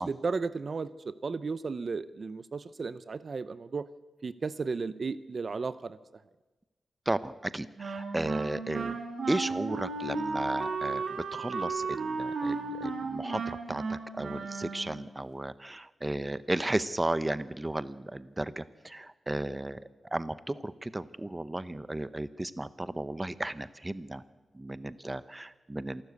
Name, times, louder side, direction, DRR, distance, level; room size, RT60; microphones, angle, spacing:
voice 1, 0.0-3.9 4.2-6.0, right 4 dB, 50° right, 14 dB, 0.7 m, -34 dB
voice 2, 7.1-8.9 9.3-11.0 11.3-19.8 20.1-24.2 24.6-26.0, right 1 dB, 20° right, 14 dB, 0.8 m, -34 dB
Wind instrument woodwind instrument, 7.8-15.1, right 4 dB, 75° right, 2.7 m, -34 dB
27.0 x 12.0 x 8.2 m, 1.2 s
cardioid pair, 85°, 0 cm